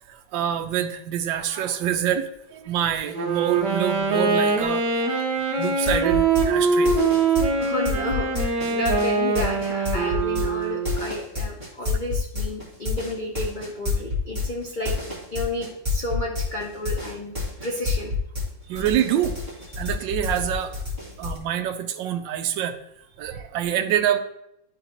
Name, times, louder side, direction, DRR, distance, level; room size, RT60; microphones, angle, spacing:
voice 1, 0.1-5.1 5.6-7.0 18.7-19.4 19.8-20.8 21.2-22.8 23.2-24.2, right 10 dB, 80° right, 7 dB, 1.3 m, -26 dB
Wind instrument woodwind instrument, 3.0-11.1, right 4 dB, 65° right, 1.6 m, -23 dB
sound 1, 5.6-18.5 18.7-21.4, left 3 dB, 20° right, 1.8 m, -28 dB
voice 2, 7.4-14.9 15.3-17.4 17.6-18.1 18.6-18.8 19.8-19.9, left 2 dB, 85° left, -2 dB, 0.4 m, -31 dB
10.5 x 4.0 x 2.9 m, 0.79 s
omnidirectional pair, 2.0 m